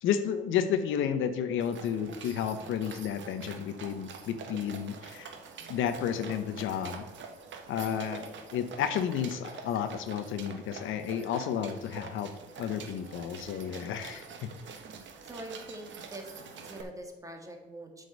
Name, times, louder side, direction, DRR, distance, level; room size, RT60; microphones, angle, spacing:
voice 1, 0.0-5.3 5.7-7.0 7.7-12.3 12.6-14.2, left 8 dB, 85° left, 9 dB, 0.8 m, -32 dB
sound 1, 1.6-16.8, right 5 dB, 70° right, 1.3 m, -46 dB
voice 2, 14.8-16.3 16.6-18.0, right 1 dB, 15° right, 3 dB, 1.8 m, -44 dB
7.9 x 5.2 x 6.3 m, 1.1 s
cardioid pair, 90°, 20 cm